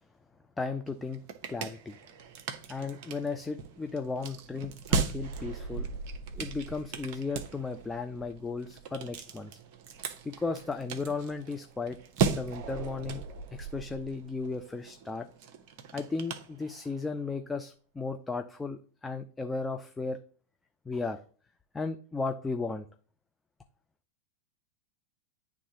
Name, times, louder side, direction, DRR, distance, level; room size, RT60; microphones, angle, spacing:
voice 1, 0.6-1.2 1.5-2.0 2.7-5.9 6.3-9.6 10.2-12.0 12.3-13.2 13.5-15.3 15.9-20.2 20.9-21.2 21.7-22.9, left 4 dB, 10° left, 6 dB, 0.5 m, -35 dB
sound 1, 0.9-17.1, right 5 dB, 45° right, 0.9 m, -37 dB
10.5 x 3.6 x 2.9 m, 0.43 s
figure-of-eight pair, 90°, 0 cm